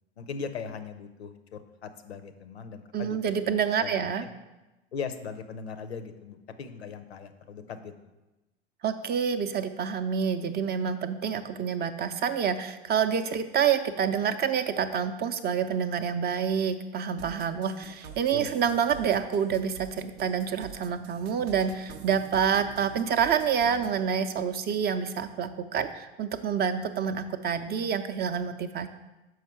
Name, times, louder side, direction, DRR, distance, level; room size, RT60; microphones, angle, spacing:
voice 1, 0.2-3.4 3.8-4.3 4.9-8.1 18.3-18.7, left 6 dB, 85° left, 10 dB, 0.6 m, -39 dB
voice 2, 2.9-4.2 8.8-28.9, right 7 dB, 30° right, 9 dB, 0.5 m, -28 dB
sound 1, 17.2-23.9, right 6 dB, 75° right, 0.6 m, -46 dB
6.3 x 4.7 x 4.5 m, 1.0 s
figure-of-eight pair, 75°, 31 cm